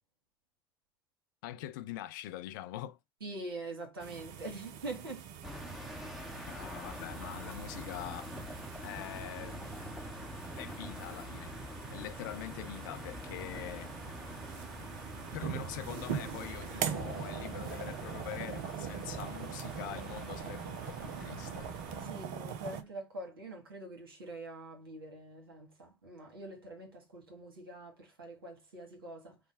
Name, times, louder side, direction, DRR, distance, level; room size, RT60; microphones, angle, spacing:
voice 1, 1.4-3.0 6.5-8.3 8.8-9.9 10.5-11.6 11.9-13.9 15.3-21.7, left 13 dB, 60° left, 0.5 m, -44 dB
voice 2, 3.2-5.3 22.0-29.4, right 2 dB, 75° right, 1.5 m, -44 dB
sound 1, 4.0-22.8, right 8 dB, 55° right, 0.6 m, -42 dB
sound 2, 5.4-22.1, left 1 dB, ahead, 0.9 m, -46 dB
5.0 x 2.2 x 4.0 m
figure-of-eight pair, 75°, 12 cm